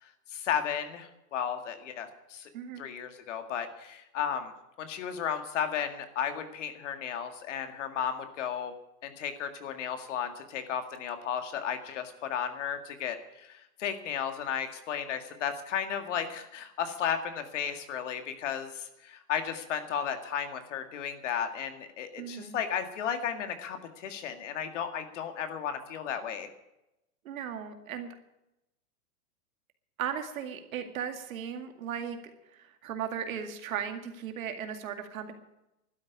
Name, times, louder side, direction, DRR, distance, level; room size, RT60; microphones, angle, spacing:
voice 1, 0.0-2.5 2.8-4.5 4.8-8.7 9.0-26.5, left 8 dB, 50° left, 7 dB, 2.0 m, -34 dB
voice 2, 2.5-2.9 22.2-22.6 27.2-28.1 30.0-32.2 32.5-35.3, right 8 dB, 60° right, 6 dB, 2.2 m, -36 dB
12.0 x 9.8 x 10.0 m, 0.88 s
supercardioid pair, 175°, 46 cm